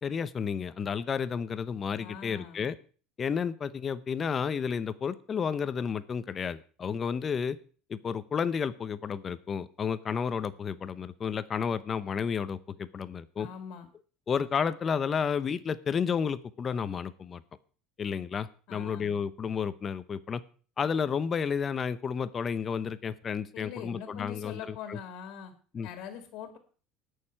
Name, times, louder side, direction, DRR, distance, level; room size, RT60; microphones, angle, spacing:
voice 1, 0.0-2.8 3.2-7.6 7.9-13.5 14.3-17.4 18.0-20.4 20.8-25.0 25.7-25.9, left 6 dB, 30° left, 14 dB, 0.8 m, -31 dB
voice 2, 2.0-2.7 13.4-13.9 18.7-19.2 23.5-25.5 25.8-26.6, left 8 dB, 65° left, 7 dB, 2.0 m, -43 dB
19.0 x 6.6 x 4.6 m, 0.40 s
supercardioid pair, 125°, 0 cm